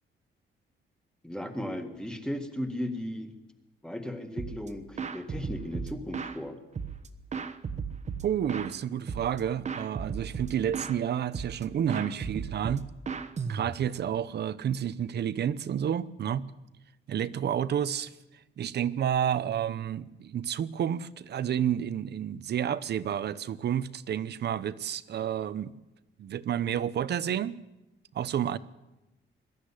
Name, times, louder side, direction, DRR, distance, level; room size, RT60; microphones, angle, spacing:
voice 1, 1.2-3.3 3.8-6.6, left 1 dB, 5° left, 1.9 m, -36 dB
sound 1, 4.4-4.7 5.0-6.4 6.7-8.7 9.1-9.4 9.6-11.0 11.3-11.6 11.9-14.0, right 6 dB, 35° right, 1.1 m, -35 dB
voice 2, 8.2-12.8 13.5-16.5 17.1-18.1 18.6-25.8 26.2-27.5 28.1-28.6, right 9 dB, 55° right, 0.8 m, -30 dB
22.0 x 13.5 x 9.9 m
wide cardioid pair, 160°, 21 cm